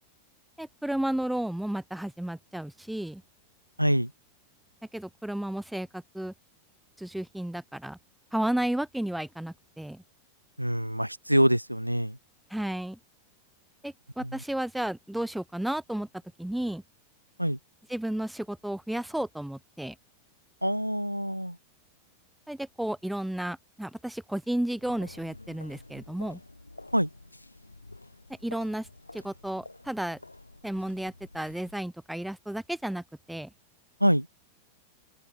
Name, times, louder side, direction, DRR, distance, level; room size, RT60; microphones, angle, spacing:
voice 1, 0.6-3.2 4.9-6.3 7.0-8.0 8.3-10.0 12.5-13.0 13.8-16.1 16.4-16.8 17.9-20.0 22.5-26.4 28.4-28.9 29.1-30.2 30.6-33.5, right 1 dB, 5° right, 0.8 m, -32 dB
voice 2, 3.8-4.1 10.6-12.2 14.2-14.3 17.4-17.6 20.6-21.6 26.9-27.1 34.0-34.3, equal, 90° right, 0.4 m, -25 dB
sound 1, 24.8-31.8, left 2 dB, 85° left, 2.0 m, -50 dB
open air
figure-of-eight pair, 90°, 0 cm